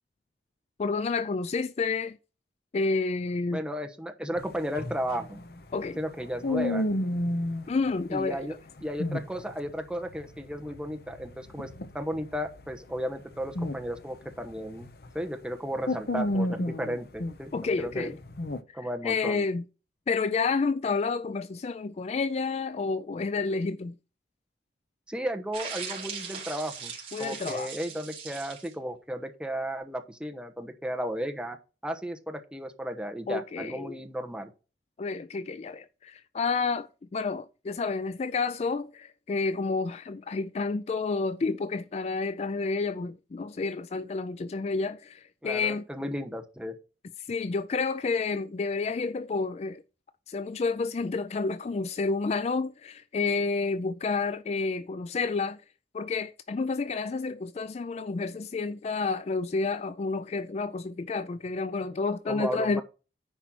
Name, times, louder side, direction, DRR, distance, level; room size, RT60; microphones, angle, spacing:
voice 1, 0.8-2.2 2.7-3.6 5.7-6.0 7.7-8.5 17.5-18.2 18.7-19.6 20.1-24.0 27.1-27.7 33.3-34.0 35.0-45.8 47.3-49.8 50.3-55.6 55.9-62.8, left 4 dB, 35° left, 0.3 m, -30 dB
voice 2, 3.5-5.4 6.0-6.9 8.1-8.6 8.8-11.7 11.9-14.9 15.1-17.5 17.8-18.1 18.7-19.4 25.1-31.6 31.8-34.5 45.4-46.8 62.3-62.8, equal, 5° right, 1.1 m, -34 dB
sound 1, 4.4-7.7 8.7-9.8 10.0-15.2 15.5-18.6, left 1 dB, 55° left, 0.8 m, -32 dB
sound 2, 25.5-28.7, right 6 dB, 35° right, 3.4 m, -39 dB
10.0 x 4.4 x 6.0 m
head